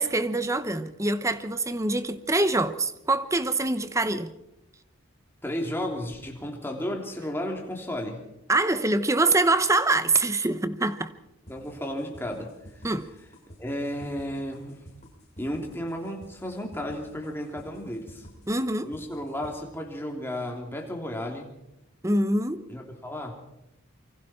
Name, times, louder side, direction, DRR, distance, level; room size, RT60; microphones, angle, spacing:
voice 1, 0.0-4.3 8.5-11.1 12.8-13.1 18.5-18.9 22.0-22.6, right 2 dB, 15° right, 0.8 m, -24 dB
voice 2, 5.4-8.2 11.5-12.8 13.6-14.8 15.4-18.3 18.8-21.5 22.7-23.3, equal, 10° left, 3.1 m, -33 dB
sound 1, 11.5-19.5, equal, 30° left, 6.6 m, -49 dB
26.5 x 24.5 x 4.5 m
head